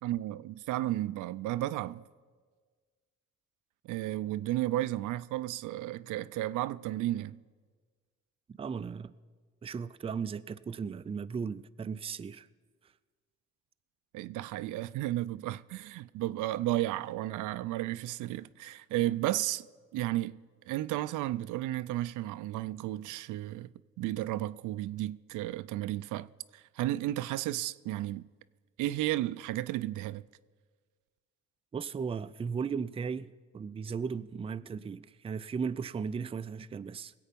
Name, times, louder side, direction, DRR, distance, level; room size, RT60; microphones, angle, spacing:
voice 1, 0.0-2.0 3.8-7.4 14.1-19.7 19.9-20.4 20.7-23.7 24.0-26.3 26.5-28.3 28.8-30.2, right 15 dB, 85° right, 0.5 m, -33 dB
voice 2, 8.6-9.1 9.6-12.5 31.7-37.1, right 6 dB, 20° right, 0.4 m, -36 dB
20.0 x 8.4 x 5.2 m
cardioid pair, 90°, 30 cm